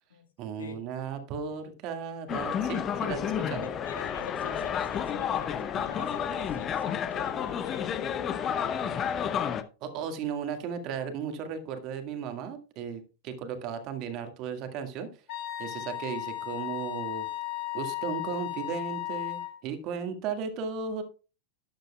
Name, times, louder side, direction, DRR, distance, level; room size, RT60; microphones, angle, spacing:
voice 1, 0.4-3.7 9.8-15.1 15.6-17.3 17.7-21.0, right 6 dB, 40° right, 1.8 m, -35 dB
sound 1, 2.3-9.6, left 8 dB, 30° left, 0.8 m, -31 dB
voice 2, 3.6-9.1, left 6 dB, 70° left, 1.7 m, -45 dB
Wind instrument woodwind instrument, 15.3-19.5, left 15 dB, 50° left, 2.0 m, -35 dB
12.5 x 10.0 x 2.3 m
figure-of-eight pair, 90°, 0 cm